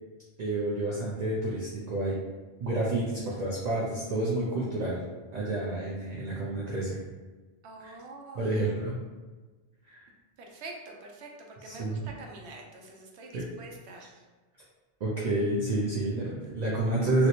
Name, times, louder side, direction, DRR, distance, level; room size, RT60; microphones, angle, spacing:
voice 1, 0.4-2.2 2.6-5.0 5.3-7.0 7.8-7.9 8.3-9.0 9.9-10.1 11.6-12.0 13.3-13.4 15.0-17.3, right 2 dB, 50° right, -5 dB, 0.5 m, -29 dB
voice 2, 7.6-8.8 10.4-14.2, right 2 dB, 90° right, 1 dB, 0.9 m, -46 dB
3.0 x 2.9 x 2.8 m, 1.3 s
omnidirectional pair, 1.1 m